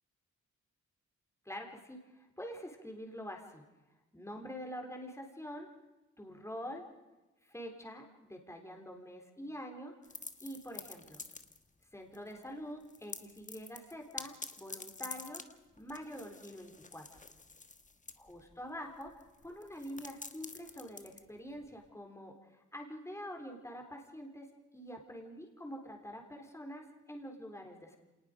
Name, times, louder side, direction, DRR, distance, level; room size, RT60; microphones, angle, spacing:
voice 1, 1.5-3.6 4.1-5.7 6.2-6.9 7.5-9.9 10.4-11.2 11.9-15.4 15.8-17.2 18.3-24.5 24.7-28.0, equal, 10° left, 2 dB, 3.8 m, -46 dB
sound 1, 10.0-11.8 12.1-12.5 12.8-21.9, left 3 dB, 25° left, 1.4 m, -48 dB
26.0 x 19.5 x 5.2 m, 1.1 s
cardioid pair, 70°, 30 cm